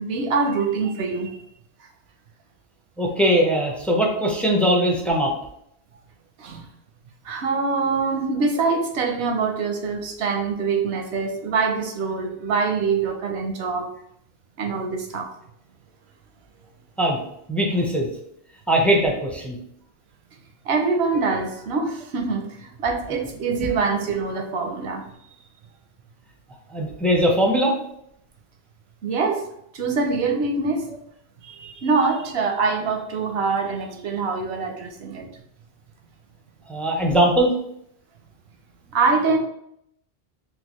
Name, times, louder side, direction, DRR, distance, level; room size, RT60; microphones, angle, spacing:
voice 1, 0.0-1.4 6.4-6.7 7.2-13.9 14.6-15.3 20.7-25.0 29.0-29.5 29.7-30.9 31.4-35.3 38.9-39.4, right 4 dB, 85° right, 4 dB, 0.9 m, -24 dB
voice 2, 3.0-5.3 17.0-17.2 17.5-18.1 18.7-19.6 23.6-23.7 26.7-27.7 36.7-37.5, equal, ahead, -1 dB, 0.4 m, -20 dB
3.9 x 2.3 x 2.9 m, 0.73 s
omnidirectional pair, 1.1 m